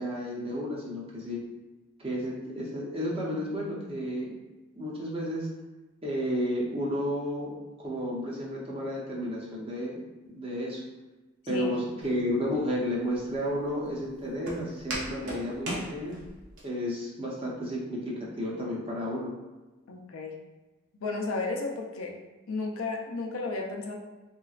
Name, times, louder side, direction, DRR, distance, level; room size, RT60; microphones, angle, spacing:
voice 1, 0.0-1.4 2.0-4.3 4.7-5.5 6.0-7.5 7.8-10.0 10.3-10.8 11.5-16.2 16.6-19.3, equal, 25° right, -4 dB, 0.7 m, -32 dB
Walk footsteps, 12.0-16.6, right 1 dB, 55° right, 0.8 m, -39 dB
voice 2, 19.9-20.4 20.9-22.2 22.5-23.9, left 3 dB, 70° left, 1 dB, 0.5 m, -33 dB
3.2 x 3.0 x 2.4 m, 1.1 s
head